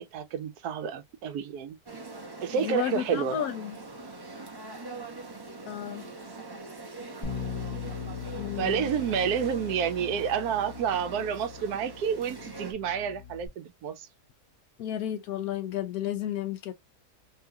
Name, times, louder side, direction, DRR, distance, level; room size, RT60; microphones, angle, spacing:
voice 1, 0.0-1.8 2.4-3.4 8.6-14.1, right 7 dB, 80° right, 1.1 m, -29 dB
sound 1, 1.9-12.7, right 3 dB, 25° right, 0.5 m, -43 dB
voice 2, 2.5-3.8 5.7-6.1 8.3-8.9 14.8-16.7, left 10 dB, 75° left, 1.2 m, -32 dB
Bass guitar, 7.2-13.5, left 7 dB, 35° left, 1.2 m, -40 dB
3.6 x 2.8 x 2.2 m
omnidirectional pair, 1.6 m